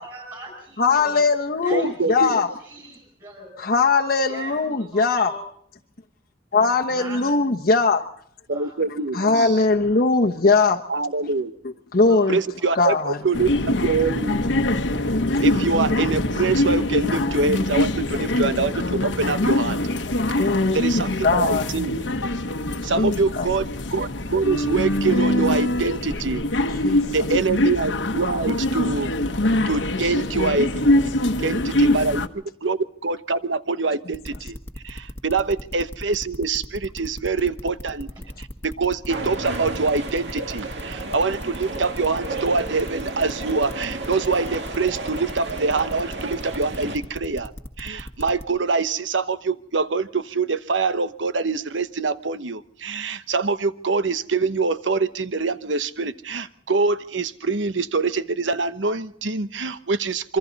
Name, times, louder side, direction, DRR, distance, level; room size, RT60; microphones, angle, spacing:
voice 1, 0.0-1.2 1.6-3.5 4.3-5.4 7.0-7.3 8.5-8.7 12.1-12.4 12.9-13.0 25.0-25.4 30.3-30.6 38.2-38.3, right 1 dB, 25° right, 0 dB, 7.3 m, -40 dB
voice 2, 0.8-2.5 3.6-5.3 6.5-8.0 8.9-10.8 11.9-12.4 12.7-13.2 20.4-21.6 22.8-23.5 26.8-27.0, left 3 dB, 50° left, 2 dB, 1.0 m, -20 dB
voice 3, 1.7-2.4 8.5-9.5 10.9-11.5 12.3-14.4 15.4-19.8 20.3-20.5 20.7-22.1 22.8-23.7 23.9-26.4 27.1-29.1 29.7-30.7 31.4-32.2 32.6-34.6 34.8-38.1 38.4-47.5 47.8-60.4, right 4 dB, 80° right, 13 dB, 1.0 m, -24 dB
sound 1, 13.3-32.3, left 1 dB, 80° left, 1.2 m, -23 dB
sound 2, 34.1-48.4, left 1 dB, 15° left, 1.5 m, -37 dB
sound 3, 39.1-47.0, right 2 dB, 65° right, 2.3 m, -32 dB
26.5 x 24.0 x 4.1 m, 0.64 s
head